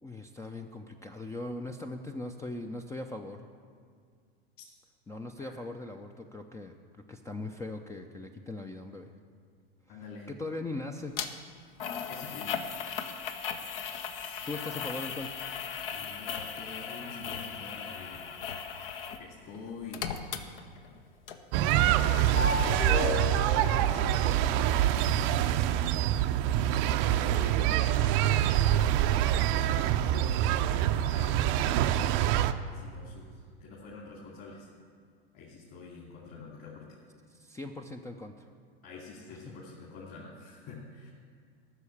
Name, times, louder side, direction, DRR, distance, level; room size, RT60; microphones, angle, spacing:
voice 1, 0.0-3.5 5.1-6.7 7.1-9.1 10.3-11.2 14.5-15.4 37.3-38.5, left 2 dB, 10° left, 4 dB, 0.5 m, -39 dB
voice 2, 9.9-10.3 12.1-12.5 14.1-14.5 15.9-18.2 19.2-20.1 21.6-22.8 23.3-24.6 26.1-28.9 29.5-31.6 32.7-34.7 35.3-36.9 38.8-41.1, left 3 dB, 40° left, -4 dB, 2.7 m, -47 dB
sound 1, 11.2-11.3 11.8-19.2 19.5-21.0 21.3-21.4, left 7 dB, 65° left, 1.1 m, -37 dB
sound 2, 21.5-32.5, right 11 dB, 45° right, 0.6 m, -25 dB
sound 3, 22.3-25.3, left 4 dB, 25° left, 1.0 m, -35 dB
13.5 x 6.4 x 8.5 m, 2.1 s
hypercardioid pair, 100°, 31 cm